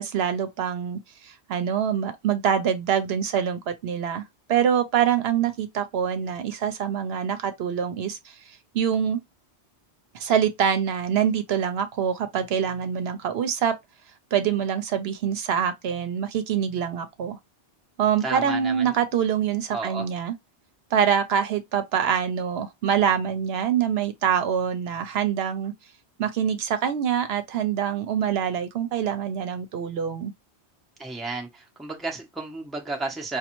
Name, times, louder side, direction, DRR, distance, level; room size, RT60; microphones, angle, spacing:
voice 1, 0.0-4.2 4.5-8.3 8.7-9.2 10.1-13.7 14.3-17.4 18.0-20.3 20.9-25.7 26.2-30.3, right 8 dB, 75° right, 0.8 m, -25 dB
voice 2, 18.2-19.0 19.7-20.1 31.0-33.4, right 3 dB, ahead, 0.6 m, -32 dB
5.2 x 2.3 x 3.0 m
omnidirectional pair, 1.1 m